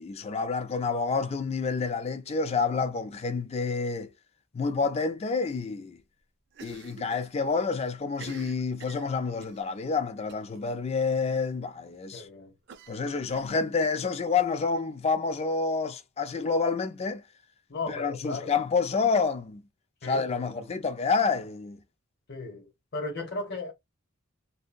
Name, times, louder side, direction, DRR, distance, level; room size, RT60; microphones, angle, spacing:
voice 1, 0.0-4.1 4.5-6.0 6.6-12.3 12.9-17.2 17.9-19.6 20.0-21.8, left 4 dB, 30° left, 0.3 m, -28 dB
Cough, 6.5-7.3 7.6-7.7 8.1-9.6 10.3-10.6 10.9-11.0 11.3-11.4 12.7-13.9, right 6 dB, 55° right, 0.4 m, -48 dB
voice 2, 12.1-12.5 17.7-18.5 20.0-20.8 22.3-23.7, left 3 dB, 55° left, 0.8 m, -36 dB
2.7 x 2.2 x 2.5 m
head